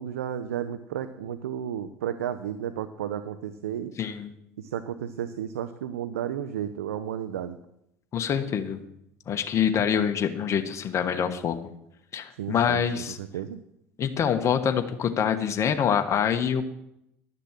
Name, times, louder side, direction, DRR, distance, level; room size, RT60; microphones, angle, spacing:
voice 1, 0.0-3.9 4.6-7.6 12.4-13.6, right 9 dB, 85° right, 12 dB, 0.6 m, -33 dB
voice 2, 4.0-4.3 8.1-8.8 9.3-11.6 12.1-13.2 14.0-16.6, left 8 dB, 40° left, 7 dB, 1.2 m, -25 dB
11.0 x 6.8 x 7.5 m, 0.80 s
hypercardioid pair, 75°, 8 cm